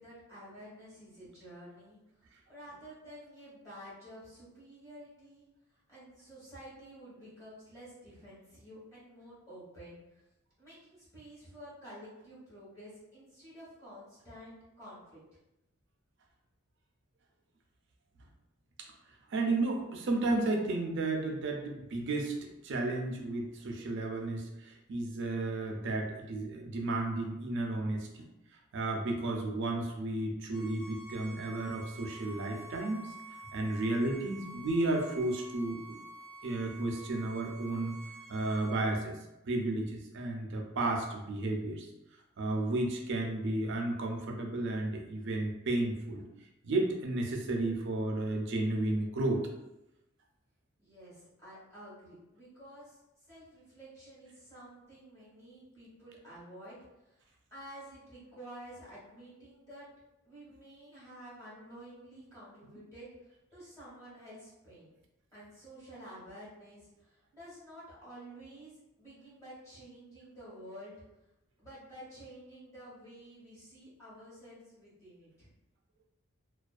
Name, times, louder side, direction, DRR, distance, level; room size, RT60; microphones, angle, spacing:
voice 1, 0.0-2.0 2.5-5.5 5.9-10.2 10.6-15.2 50.8-59.9 60.2-64.9 65.3-68.7 69.0-71.0 71.6-75.5, equal, 15° left, -10 dB, 1.1 m, -51 dB
voice 2, 19.3-28.2 28.7-33.1 33.5-36.0 36.4-37.9 38.3-39.2 39.5-41.9 42.4-46.2 46.6-49.4, right 2 dB, 60° right, 2 dB, 0.4 m, -33 dB
Bowed string instrument, 30.5-38.8, right 1 dB, 80° left, 0.7 m, -49 dB
2.4 x 2.2 x 2.3 m, 0.93 s
head